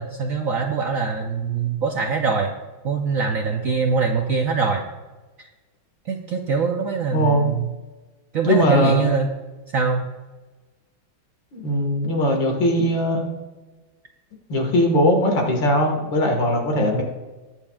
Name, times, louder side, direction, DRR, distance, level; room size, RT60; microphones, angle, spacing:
voice 1, 0.0-2.5 2.8-4.8 5.4-5.5 6.1-7.7 8.3-9.3 9.7-10.0, right 5 dB, 60° right, 3 dB, 0.9 m, -23 dB
voice 2, 7.1-7.5 8.4-9.0 11.5-13.3 14.5-17.0, equal, 70° left, 1 dB, 2.4 m, -20 dB
20.0 x 7.3 x 2.4 m, 1.2 s
omnidirectional pair, 2.2 m